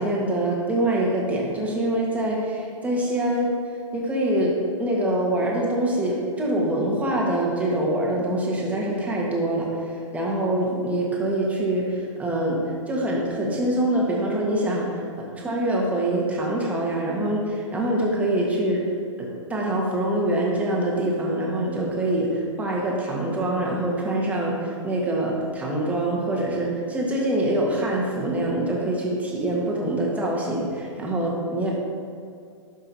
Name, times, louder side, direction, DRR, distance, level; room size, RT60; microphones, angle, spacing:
voice 1, 0.0-3.5 3.9-15.0 15.3-18.8 19.2-31.7, right 1 dB, 10° right, -3 dB, 1.5 m, -25 dB
11.5 x 5.5 x 2.8 m, 2.3 s
figure-of-eight pair, 115°, 16 cm